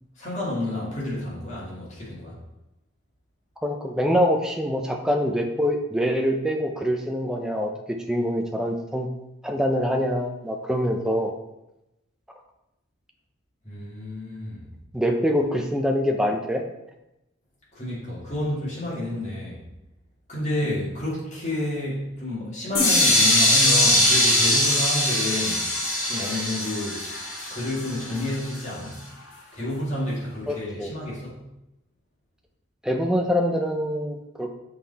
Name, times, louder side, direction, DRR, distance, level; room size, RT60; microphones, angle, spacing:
voice 1, 0.2-2.4 13.6-14.7 17.7-19.6 20.3-25.6 26.1-27.0 27.5-29.0 29.5-31.5, left 1 dB, 35° left, -6 dB, 2.1 m, -30 dB
voice 2, 3.6-7.7 8.1-9.1 9.4-11.3 14.9-16.6 30.5-30.9 32.8-34.5, equal, 5° right, 3 dB, 0.5 m, -24 dB
sound 1, 22.7-28.6, left 1 dB, 90° left, 1.6 m, -21 dB
6.6 x 3.9 x 4.1 m, 0.92 s
head